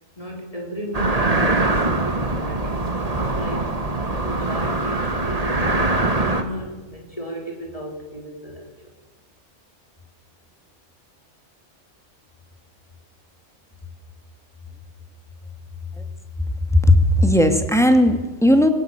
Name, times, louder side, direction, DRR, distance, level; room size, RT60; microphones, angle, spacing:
voice 1, 0.2-3.8 4.2-8.9, equal, 30° left, -1 dB, 3.9 m, -35 dB
sound 1, 0.9-6.4, right 2 dB, 30° right, 1.8 m, -22 dB
voice 2, 16.7-18.7, left 1 dB, ahead, 6 dB, 2.1 m, -16 dB
21.5 x 17.5 x 9.0 m, 1.2 s
omnidirectional pair, 1.3 m